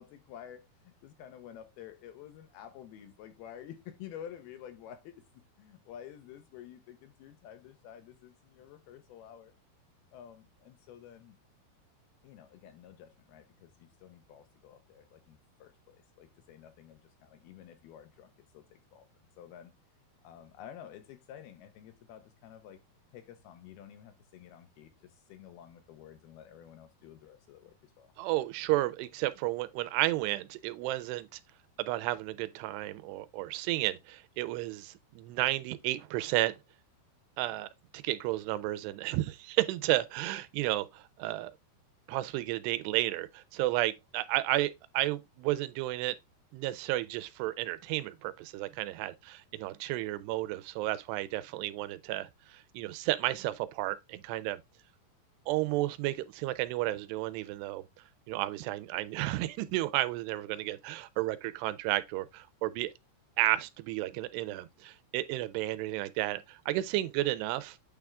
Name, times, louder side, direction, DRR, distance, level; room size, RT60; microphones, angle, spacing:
voice 1, 0.0-9.5 10.1-11.4 12.2-19.1 19.4-19.7 20.2-22.8 23.1-28.1, left 10 dB, 75° left, 2.7 m, -50 dB
voice 2, 28.2-31.4 31.8-36.6 37.4-37.7 38.0-41.5 42.1-46.2 46.5-54.6 55.5-57.8 58.3-62.9 63.4-67.8, right 16 dB, 85° right, 2.7 m, -32 dB
8.9 x 3.5 x 3.5 m
omnidirectional pair, 4.8 m